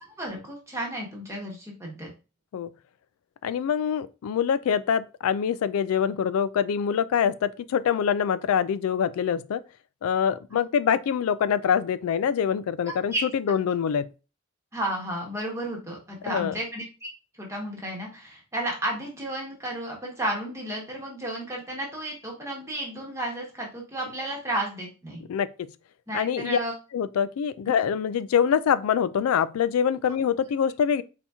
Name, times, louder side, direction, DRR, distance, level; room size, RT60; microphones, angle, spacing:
voice 1, 0.0-2.1 10.5-10.6 13.1-13.2 14.7-17.1 17.4-25.2 26.1-26.7, right 1 dB, 15° right, 1.0 m, -32 dB
voice 2, 3.4-9.6 10.0-14.1 16.3-16.5 25.3-25.7 26.1-26.6 26.9-31.0, left 7 dB, 90° left, 0.3 m, -25 dB
4.3 x 2.8 x 3.5 m
head